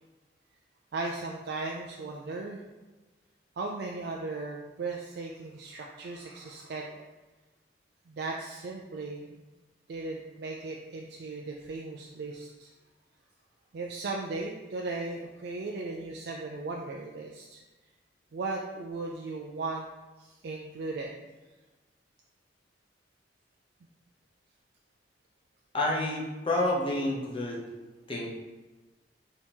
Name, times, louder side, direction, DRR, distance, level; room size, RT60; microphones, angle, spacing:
voice 1, 0.9-2.6 3.6-7.0 8.1-9.4 9.9-12.7 13.7-17.6 18.3-19.8 20.2-21.1, right 3 dB, 60° right, -1 dB, 0.4 m, -37 dB
voice 2, 25.7-27.6 28.1-28.3, left 1 dB, 30° left, -4 dB, 0.8 m, -29 dB
3.5 x 2.9 x 4.2 m, 1.2 s
head